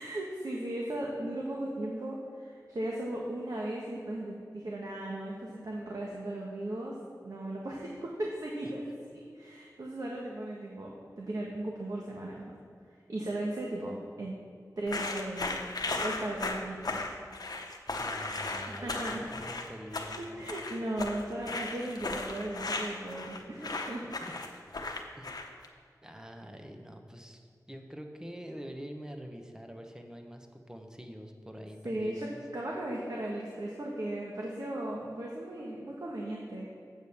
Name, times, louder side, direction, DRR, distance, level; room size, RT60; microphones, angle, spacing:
voice 1, 0.0-6.9 7.2-8.8 9.3-10.9 11.2-12.5 13.1-14.4 14.8-15.6 16.0-17.0 18.7-19.2 20.2-24.1 31.8-32.3 32.5-36.7, right 1 dB, 65° right, -3 dB, 1.2 m, -36 dB
sound 1, 14.9-25.6, left 3 dB, 70° left, 0.9 m, -36 dB
voice 2, 18.0-20.4 24.1-24.3 25.2-25.5 26.0-32.4, equal, 10° right, 4 dB, 1.0 m, -45 dB
8.0 x 5.2 x 7.0 m, 2.2 s
wide cardioid pair, 50°, 7 cm